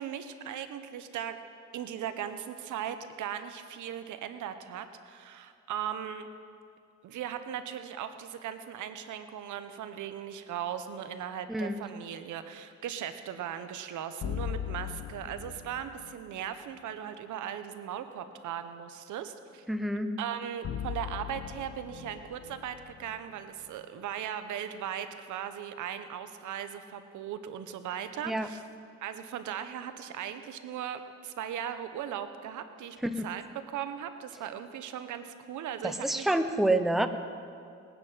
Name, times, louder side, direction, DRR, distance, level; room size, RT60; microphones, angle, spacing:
voice 1, 0.0-1.4 1.7-6.3 7.0-19.7 20.2-28.6 29.0-33.0 33.2-36.4, right 9 dB, 80° right, 10 dB, 1.0 m, -38 dB
voice 2, 11.5-11.8 19.7-20.1 28.3-28.5 33.0-33.3 35.8-37.1, right 1 dB, ahead, 8 dB, 0.8 m, -28 dB
sound 1, 14.2-16.4 20.6-23.9, left 9 dB, 50° left, 0.6 m, -39 dB
20.0 x 9.8 x 5.7 m, 2.4 s
cardioid pair, 90°, 30 cm